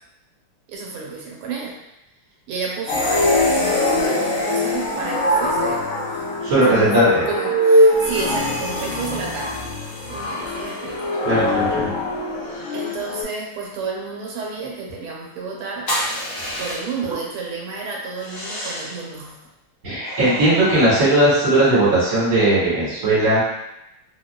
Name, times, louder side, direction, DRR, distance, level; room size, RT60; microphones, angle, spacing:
voice 1, 0.7-1.8 2.5-6.3 6.7-9.6 10.1-11.2 12.7-15.9 16.6-19.4, right 4 dB, 85° right, -2 dB, 1.7 m, -31 dB
sound 1, 2.9-13.2, left 1 dB, 75° left, 0.8 m, -21 dB
voice 2, 6.4-7.3 11.2-11.9 19.8-23.4, right 1 dB, 40° right, -9 dB, 1.8 m, -18 dB
sound 2, 15.9-17.1 18.2-19.1 20.0-21.7, equal, 45° left, 1.5 m, -30 dB
3.6 x 2.8 x 2.2 m, 0.87 s
omnidirectional pair, 2.4 m